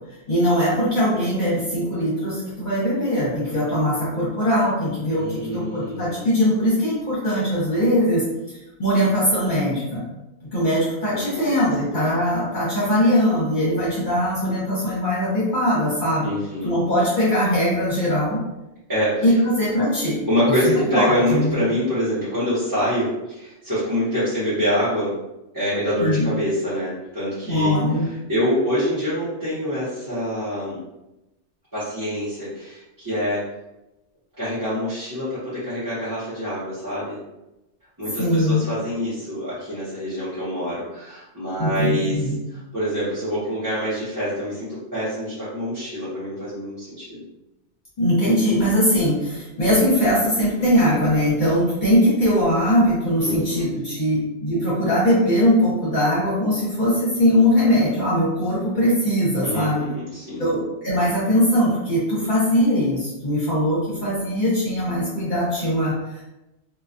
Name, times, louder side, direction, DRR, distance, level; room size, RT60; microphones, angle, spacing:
voice 1, 0.3-8.2 8.8-10.0 10.5-16.3 16.6-18.4 19.2-20.2 20.6-21.6 26.0-26.3 27.5-28.1 38.2-38.7 41.6-42.3 48.0-59.8 60.4-66.3, equal, 50° left, -8 dB, 0.9 m, -21 dB
voice 2, 5.1-6.3 11.1-11.6 11.9-12.1 16.2-16.7 18.9-19.3 20.3-25.1 25.5-30.8 31.7-33.5 34.4-37.2 38.0-42.2 42.5-47.2 53.2-53.7 59.4-60.5, equal, 20° right, -14 dB, 0.7 m, -25 dB
2.2 x 2.2 x 2.5 m, 0.96 s
omnidirectional pair, 1.2 m